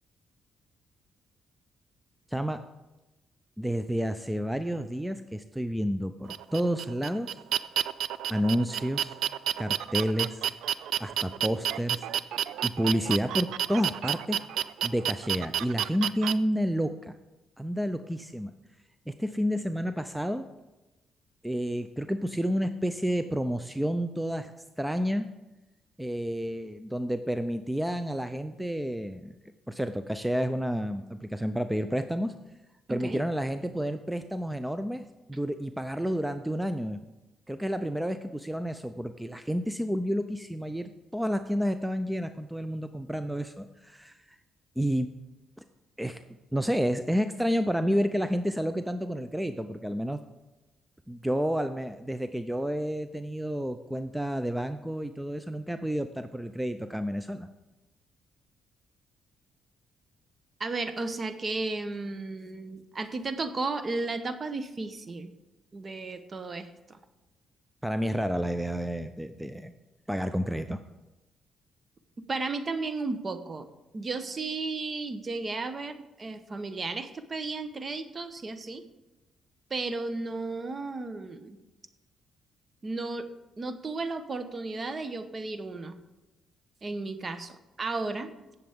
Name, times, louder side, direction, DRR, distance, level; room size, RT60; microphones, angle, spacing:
voice 1, 2.3-2.6 3.6-7.3 8.3-9.2 9.6-10.4 11.0-12.1 12.6-14.4 14.8-17.1 17.6-18.5 19.1-20.5 21.4-24.5 24.8-25.3 26.0-29.4 29.7-32.3 32.9-37.0 37.5-44.4 44.8-45.1 46.0-46.2 46.5-50.2 51.1-57.5 67.8-69.7 70.1-70.8, equal, 5° right, 9 dB, 0.5 m, -30 dB
sound 1, 6.3-16.3, right 10 dB, 80° right, 0.4 m, -30 dB
voice 2, 32.9-33.2 60.6-65.3 65.7-67.0 72.2-73.7 73.9-78.8 79.7-81.6 82.8-83.3 83.6-86.0 86.8-88.3, right 3 dB, 35° right, 10 dB, 1.0 m, -34 dB
17.5 x 7.0 x 3.6 m, 1.1 s
cardioid pair, 90°, 0 cm